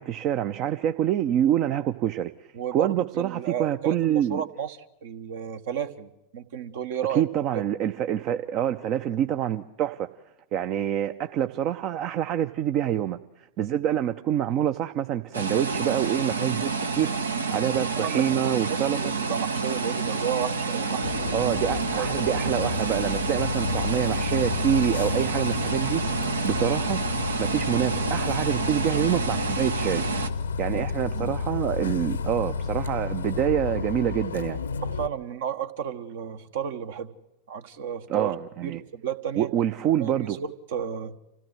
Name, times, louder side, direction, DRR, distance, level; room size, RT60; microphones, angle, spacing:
voice 1, 0.0-2.3 2.7-4.4 7.1-10.1 10.5-16.7 17.0-17.1 17.5-19.1 21.3-26.0 26.4-27.0 27.4-30.0 30.6-34.6 38.1-38.8 39.4-40.4, right 10 dB, 40° right, 9 dB, 0.7 m, -26 dB
voice 2, 2.5-7.2 7.5-7.6 13.9-14.0 18.0-21.3 22.0-22.4 30.7-30.9 31.1-31.3 34.8-37.1 37.5-38.3 38.6-39.5 39.9-41.2, right 8 dB, 55° right, 9 dB, 1.3 m, -33 dB
sound 1, 15.3-30.3, right 4 dB, 75° right, 1.1 m, -29 dB
Bus, 21.0-35.1, left 5 dB, 70° left, 0.8 m, -31 dB
27.0 x 16.5 x 7.7 m, 0.96 s
figure-of-eight pair, 90°, 0 cm